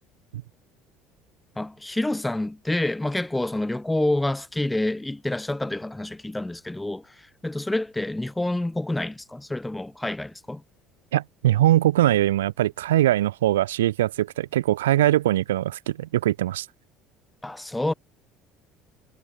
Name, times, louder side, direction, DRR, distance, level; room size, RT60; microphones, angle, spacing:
voice 1, 1.6-10.6 17.4-17.9, left 1 dB, 10° left, 1.9 m, -28 dB
voice 2, 11.1-16.7, right 14 dB, 75° right, 1.0 m, -22 dB
figure-of-eight pair, 60°, 0 cm